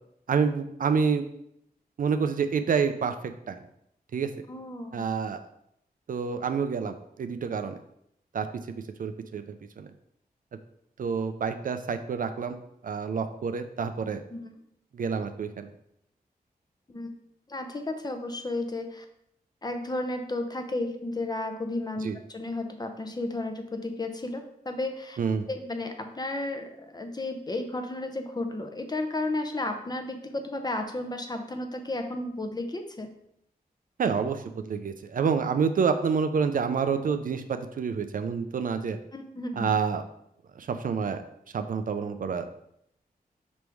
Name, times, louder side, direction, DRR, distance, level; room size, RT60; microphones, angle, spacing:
voice 1, 0.3-1.2 2.0-3.1 3.5-3.6 4.1-4.3 4.9-5.5 6.1-7.8 8.3-8.5 9.0-9.9 11.0-14.2 14.9-15.7 22.0-22.2 25.2-25.4 34.0-39.0 39.6-40.0 40.6-41.2 41.5-42.5, right 6 dB, 60° right, 8 dB, 0.4 m, -28 dB
voice 2, 4.5-5.0 14.3-14.5 16.9-17.1 17.5-19.0 19.6-25.2 25.5-33.1 39.1-39.7, left 2 dB, 25° left, 5 dB, 0.6 m, -33 dB
5.1 x 3.1 x 3.4 m, 0.75 s
wide cardioid pair, 80°, 16 cm